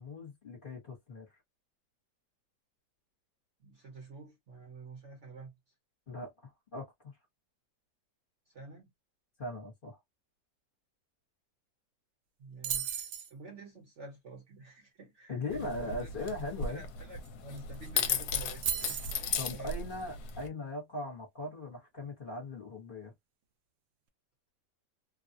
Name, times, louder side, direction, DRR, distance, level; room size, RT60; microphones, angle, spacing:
voice 1, 0.0-1.3 6.1-7.1 9.4-10.0 15.3-16.8 19.4-23.1, left 2 dB, 35° left, 1.1 m, -40 dB
voice 2, 3.6-5.5 8.5-8.9 12.4-16.1 16.7-19.7, right 3 dB, 50° right, 1.0 m, -49 dB
sound 1, 12.6-13.3 17.3-17.4 17.6-17.9 18.6-19.3, right 8 dB, 70° right, 0.7 m, -34 dB
sound 2, 15.5-20.5, left 6 dB, 70° left, 1.1 m, -36 dB
2.9 x 2.3 x 2.6 m
omnidirectional pair, 1.9 m